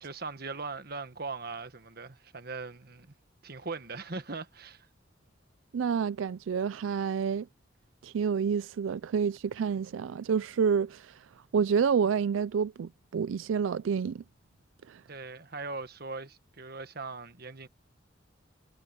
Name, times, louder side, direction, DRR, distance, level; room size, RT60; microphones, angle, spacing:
voice 1, 0.0-3.1 3.4-4.9 15.1-17.7, right 3 dB, 55° right, 1.4 m, -40 dB
voice 2, 5.7-7.5 8.0-11.3 11.5-14.2 14.9-15.0, right 6 dB, 90° right, 0.4 m, -28 dB
head